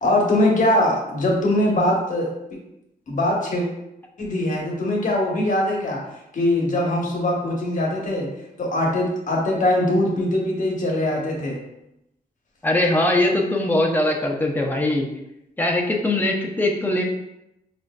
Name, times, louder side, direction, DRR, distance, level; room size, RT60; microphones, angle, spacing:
voice 1, 0.0-2.3 3.1-3.7 4.2-6.0 6.3-8.3 8.6-11.6, left 1 dB, 50° left, -2 dB, 0.9 m, -21 dB
voice 2, 12.6-15.1 15.6-17.0, left 1 dB, 10° left, 0 dB, 0.5 m, -21 dB
4.8 x 2.5 x 2.2 m, 0.86 s
wide cardioid pair, 115°, 16 cm